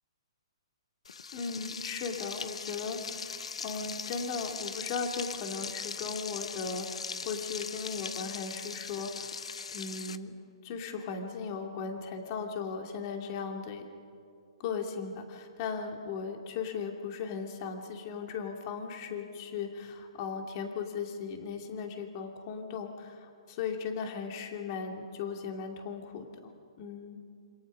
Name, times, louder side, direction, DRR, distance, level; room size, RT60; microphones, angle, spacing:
Frying (food), 1.0-10.2, left 5 dB, 85° left, 0.9 m, -40 dB
voice 1, 1.3-9.4 9.7-10.4 10.6-13.9 14.6-26.5 26.8-27.2, left 5 dB, 40° left, 3 dB, 2.7 m, -37 dB
27.5 x 26.5 x 5.4 m, 2.4 s
hypercardioid pair, 145°, 3 cm